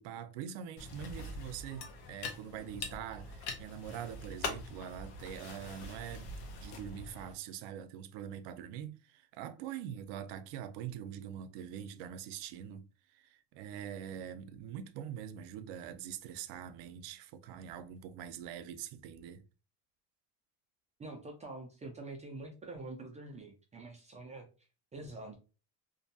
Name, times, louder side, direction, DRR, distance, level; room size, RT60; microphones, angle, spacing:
voice 1, 0.0-12.8 13.1-19.4, right 9 dB, 80° right, 0.5 m, -44 dB
sound 1, 0.8-7.3, left 3 dB, 85° left, 0.8 m, -43 dB
voice 2, 21.0-24.5 24.9-25.3, right 2 dB, 20° right, 0.3 m, -46 dB
2.5 x 2.2 x 2.6 m
cardioid pair, 130°, 41 cm